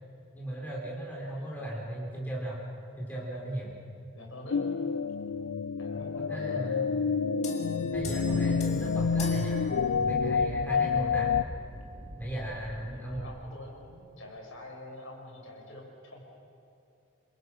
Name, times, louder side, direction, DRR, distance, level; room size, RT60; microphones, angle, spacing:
voice 1, 0.3-2.6 3.0-3.7 6.3-6.8 7.9-9.6 10.0-11.3 12.2-13.3, right 1 dB, 10° left, -5 dB, 4.2 m, -36 dB
voice 2, 4.1-4.8 5.8-6.7 12.8-16.2, left 1 dB, 65° left, -1 dB, 5.9 m, -46 dB
sound 1, 4.5-11.4, left 5 dB, 85° left, 0.5 m, -28 dB
sound 2, 7.4-10.4, left 3 dB, 30° left, 2.2 m, -43 dB
sound 3, 7.9-13.4, equal, 35° right, 2.5 m, -43 dB
27.5 x 26.0 x 6.4 m, 2.7 s
head